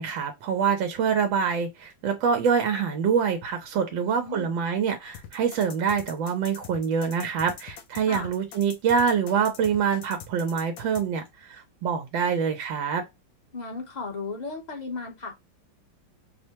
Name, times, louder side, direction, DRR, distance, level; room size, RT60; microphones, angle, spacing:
voice 1, 0.0-13.0, right 6 dB, 85° right, 1.4 m, -25 dB
voice 2, 3.9-4.5 8.1-8.3 13.5-15.4, left 4 dB, 35° left, 0.8 m, -35 dB
sound 1, 5.1-11.0, left 8 dB, 85° left, 1.5 m, -43 dB
4.8 x 2.2 x 2.8 m
omnidirectional pair, 2.0 m